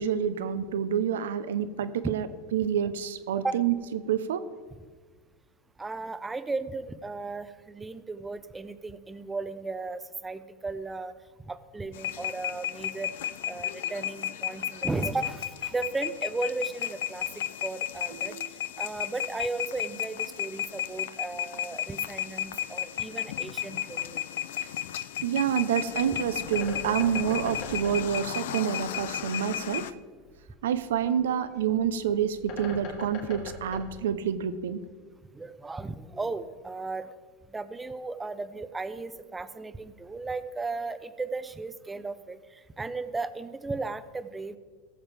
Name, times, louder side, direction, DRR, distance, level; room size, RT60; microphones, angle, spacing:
voice 1, 0.0-2.3 2.5-3.7 4.1-4.4 18.3-18.4 25.2-29.9 30.6-34.8, right 8 dB, 85° right, 13 dB, 0.7 m, -28 dB
voice 2, 5.8-11.1 11.5-13.1 13.5-18.4 18.8-24.2 35.3-37.1 37.5-44.6, right 3 dB, 15° right, 13 dB, 0.6 m, -35 dB
sound 1, 11.9-29.9, left 11 dB, 80° left, 0.4 m, -34 dB
Bird, 25.7-34.8, left 3 dB, 65° left, 2.8 m, -44 dB
17.0 x 7.3 x 3.4 m, 1.5 s
supercardioid pair, 115°, 0 cm